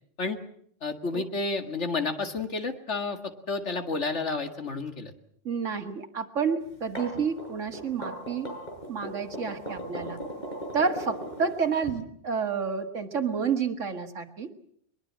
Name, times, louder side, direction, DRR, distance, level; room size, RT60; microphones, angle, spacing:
voice 1, 0.8-5.1, left 3 dB, 65° left, 6 dB, 2.3 m, -31 dB
voice 2, 5.4-8.5 8.9-10.2 10.7-14.5, right 6 dB, 80° right, 6 dB, 2.2 m, -29 dB
sound 1, 6.7-11.9, equal, 35° left, 7.3 m, -37 dB
22.5 x 22.0 x 7.5 m, 0.68 s
omnidirectional pair, 1.3 m